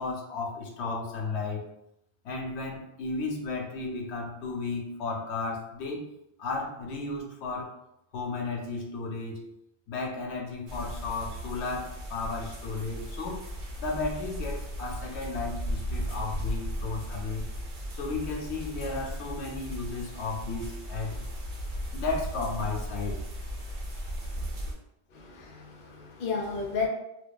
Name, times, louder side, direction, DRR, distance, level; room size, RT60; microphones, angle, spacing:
voice 1, 0.0-1.7 2.2-6.1 6.4-7.8 8.1-9.5 9.9-13.5 13.8-17.5 17.9-21.2 21.9-23.2, left 3 dB, 85° left, 0 dB, 0.9 m, -34 dB
sound 1, 10.7-24.7, equal, 90° right, 1.0 m, -36 dB
voice 2, 25.1-26.9, left 5 dB, 55° left, 0 dB, 0.6 m, -33 dB
2.6 x 2.2 x 2.2 m, 0.81 s
omnidirectional pair, 1.1 m